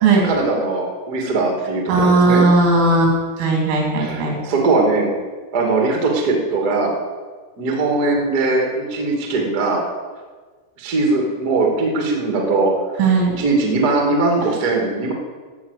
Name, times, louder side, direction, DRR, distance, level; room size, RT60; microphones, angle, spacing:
voice 1, 0.2-2.4 4.0-5.1 5.5-6.9 7.6-9.8 10.8-12.7 13.4-15.1, right 3 dB, 50° right, 1 dB, 1.1 m, -20 dB
voice 2, 1.9-3.1 3.4-4.4 13.0-13.3, right 3 dB, 85° right, -1 dB, 5.3 m, -16 dB
14.0 x 5.9 x 8.1 m, 1.4 s
omnidirectional pair, 5.6 m